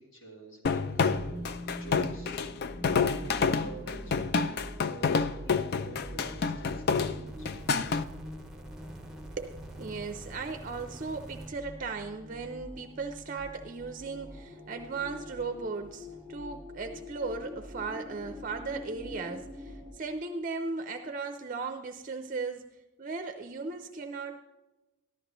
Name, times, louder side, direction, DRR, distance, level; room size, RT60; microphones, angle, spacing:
voice 1, 0.1-2.3 3.0-7.5, right 1 dB, 70° left, -4 dB, 3.7 m, -48 dB
sound 1, 0.6-8.0, left 5 dB, 50° left, 0.4 m, -28 dB
sound 2, 1.0-19.9, equal, 10° left, 3.7 m, -44 dB
sound 3, 7.3-11.5 12.4-12.5, right 1 dB, 5° right, 0.8 m, -48 dB
voice 2, 9.4-24.4, right 4 dB, 40° right, 7 dB, 0.5 m, -37 dB
14.0 x 12.0 x 3.0 m, 1.1 s
head